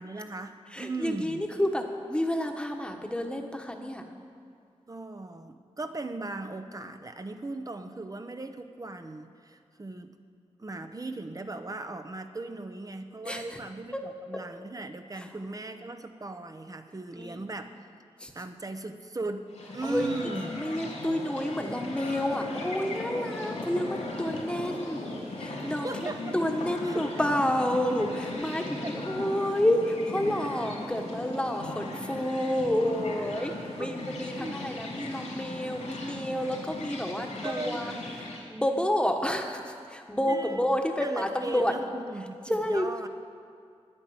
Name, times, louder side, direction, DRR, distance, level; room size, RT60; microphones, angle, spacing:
voice 1, 0.0-1.4 4.9-10.1 10.6-17.8 18.3-20.6 25.8-26.2 26.8-27.0 28.8-28.9 33.8-33.9 34.4-34.6 37.4-37.8 40.3-40.6 41.0-43.1, right 2 dB, 30° right, 8 dB, 0.8 m, -38 dB
voice 2, 0.7-4.1 13.2-13.6 13.9-14.0 14.3-14.4 15.2-15.3 17.1-17.4 18.2-18.3 19.8-20.1 20.6-26.1 26.3-41.8 42.5-42.9, left 1 dB, 10° left, 3 dB, 1.3 m, -29 dB
sound 1, 19.5-38.4, left 2 dB, 85° left, 3.1 m, -38 dB
10.5 x 9.8 x 8.5 m, 2.3 s
wide cardioid pair, 80°, 11 cm